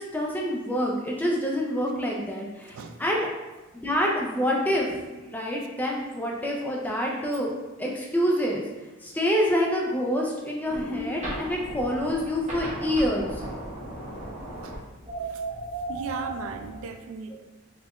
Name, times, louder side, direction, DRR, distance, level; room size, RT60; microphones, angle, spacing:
voice 1, 0.0-3.3 3.7-7.5 7.8-8.7 9.0-13.3, equal, 10° left, -2 dB, 0.4 m, -27 dB
sound 1, 10.6-16.8, right 1 dB, 35° right, 0.8 m, -35 dB
voice 2, 15.9-17.4, right 4 dB, 75° right, 6 dB, 0.3 m, -36 dB
3.9 x 2.4 x 3.0 m, 1.1 s
head